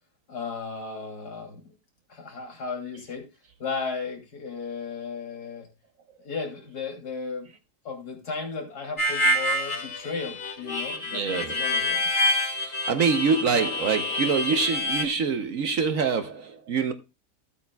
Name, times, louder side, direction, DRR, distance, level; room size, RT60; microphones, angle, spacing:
voice 1, 0.3-1.7 2.1-3.3 3.6-5.7 6.2-7.5 7.8-12.0, left 4 dB, 65° left, 3.3 m, -35 dB
Harmonica, 9.0-15.1, left 1 dB, 35° left, 1.3 m, -27 dB
voice 2, 11.1-11.6 12.5-16.9, right 5 dB, 60° right, 1.0 m, -25 dB
15.0 x 8.5 x 2.2 m
omnidirectional pair, 1.8 m